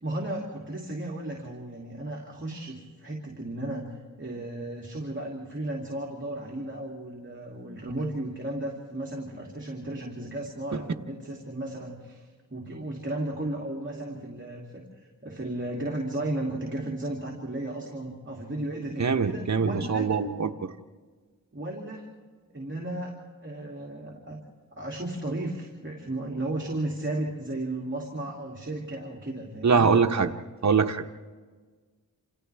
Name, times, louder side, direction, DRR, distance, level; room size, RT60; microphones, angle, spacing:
voice 1, 0.0-3.9 4.2-14.8 15.2-20.1 21.5-22.0 22.5-23.1 23.4-24.4 24.7-29.9, right 1 dB, 35° right, -1 dB, 2.7 m, -34 dB
voice 2, 19.0-20.5 29.6-30.3 30.6-31.0, right 5 dB, 50° right, 6 dB, 1.0 m, -23 dB
28.5 x 27.0 x 3.5 m, 1.5 s
wide cardioid pair, 80°, 34 cm